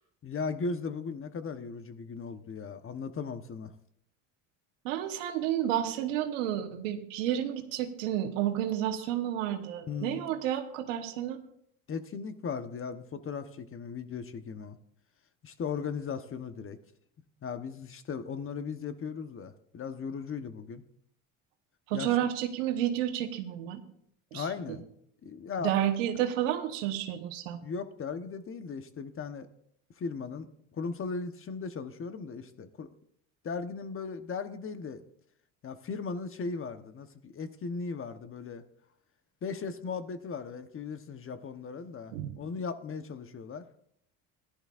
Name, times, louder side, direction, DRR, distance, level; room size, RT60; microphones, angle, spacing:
voice 1, 0.2-3.7 9.9-10.3 11.9-14.8 15.4-16.8 17.4-20.8 21.9-22.2 24.3-24.9 25.2-25.7 27.6-29.5 30.0-30.5 30.7-32.9 33.4-35.0 35.6-38.6 39.4-43.6, left 5 dB, 35° left, 10 dB, 1.0 m, -37 dB
voice 2, 4.8-11.4 21.9-23.8 24.3-24.8 25.6-27.6 42.1-42.4, right 11 dB, 90° right, 6 dB, 1.2 m, -31 dB
15.0 x 11.5 x 2.5 m, 0.70 s
supercardioid pair, 85°, 38 cm